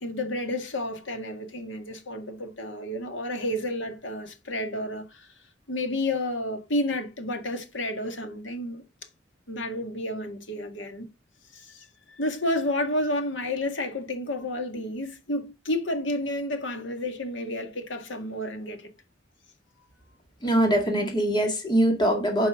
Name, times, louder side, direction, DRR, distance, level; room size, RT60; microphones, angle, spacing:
voice 1, 0.0-5.3 5.7-8.8 9.5-11.1 11.5-18.9 19.8-19.9, left 1 dB, 75° left, 1.9 m, -31 dB
voice 2, 20.4-22.5, right 1 dB, 25° left, 1.9 m, -23 dB
9.9 x 5.5 x 3.7 m
head